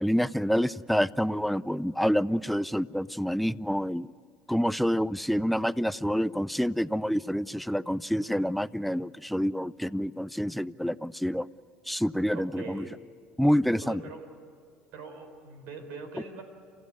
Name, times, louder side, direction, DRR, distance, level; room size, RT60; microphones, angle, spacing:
voice 1, 0.0-4.1 4.5-11.5 11.9-12.9 13.4-14.0, equal, ahead, 17 dB, 0.5 m, -27 dB
voice 2, 12.3-13.0 13.8-14.3 14.9-16.4, right 4 dB, 65° right, 6 dB, 4.3 m, -42 dB
29.0 x 14.0 x 9.5 m, 2.1 s
hypercardioid pair, 70°, 4 cm